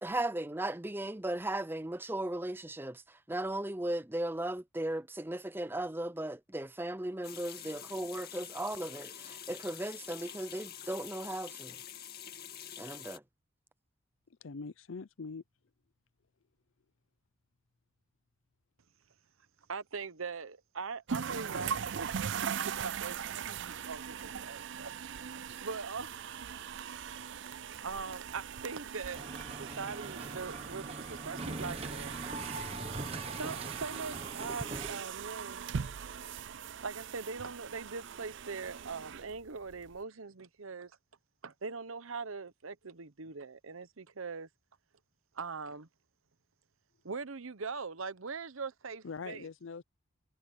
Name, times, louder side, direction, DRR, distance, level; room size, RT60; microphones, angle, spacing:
voice 1, 0.0-11.8 12.8-13.2, right 1 dB, 10° right, 0.6 m, -36 dB
sound 1, 7.2-13.2, left 9 dB, 45° left, 2.3 m, -47 dB
voice 2, 14.3-15.4 49.0-49.8, left 4 dB, 65° left, 0.6 m, -43 dB
voice 3, 19.7-24.9 25.2-26.5 27.1-32.1 33.3-35.7 36.8-40.9 41.4-44.5 45.3-45.9 47.0-49.5, right 4 dB, 70° right, 0.9 m, -42 dB
sound 2, 21.1-40.0, right 7 dB, 55° right, 0.4 m, -40 dB
sound 3, 29.1-35.0, right 2 dB, 25° right, 1.1 m, -42 dB
head